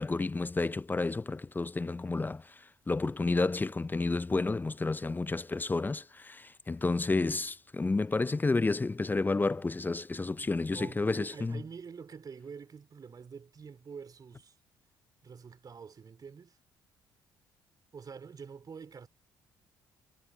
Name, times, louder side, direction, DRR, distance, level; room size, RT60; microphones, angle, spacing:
voice 1, 0.0-11.6, left 3 dB, 20° left, 0.6 m, -31 dB
voice 2, 10.2-14.5 15.2-16.6 17.9-19.1, right 6 dB, 40° right, 3.4 m, -47 dB
hypercardioid pair, 60°, 9 cm